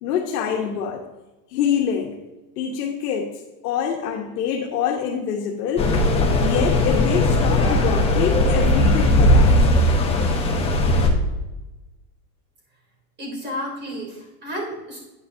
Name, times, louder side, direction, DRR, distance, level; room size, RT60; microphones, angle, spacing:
voice 1, 0.0-1.0 1.5-2.2 2.6-3.3 3.6-5.9 6.4-9.7, left 7 dB, 75° left, -1 dB, 1.3 m, -25 dB
sound 1, 5.8-11.1, left 1 dB, 15° left, 1.0 m, -18 dB
voice 2, 13.2-15.0, equal, 20° right, -2 dB, 3.2 m, -31 dB
9.5 x 9.3 x 2.7 m, 1.1 s
supercardioid pair, 145°, 47 cm